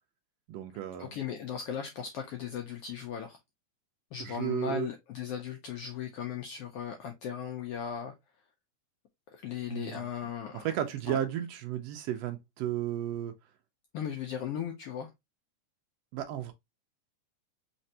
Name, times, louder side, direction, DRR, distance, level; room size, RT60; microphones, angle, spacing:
voice 1, 0.5-1.1 4.2-4.9 9.7-10.0 10.5-13.3 16.1-16.5, right 10 dB, 85° right, 1.4 m, -33 dB
voice 2, 1.0-3.4 4.1-8.1 9.3-10.6 11.1-11.2 13.9-15.1, left 8 dB, 85° left, 1.3 m, -37 dB
4.3 x 3.3 x 2.7 m
omnidirectional pair, 3.4 m